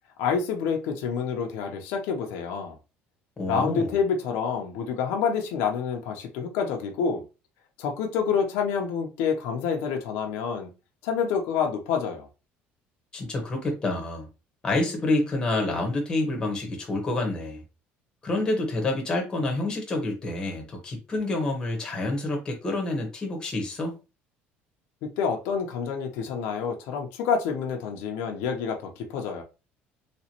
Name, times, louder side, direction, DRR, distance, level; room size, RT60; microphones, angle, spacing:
voice 1, 0.2-2.8 3.5-7.2 7.8-10.7 11.0-12.3 25.0-29.4, left 6 dB, 85° left, 0.8 m, -28 dB
voice 2, 3.4-4.0 13.1-14.3 14.6-17.6 18.2-24.0, left 2 dB, 20° left, 1.1 m, -28 dB
3.3 x 3.0 x 2.9 m
cardioid pair, 170°, 4 cm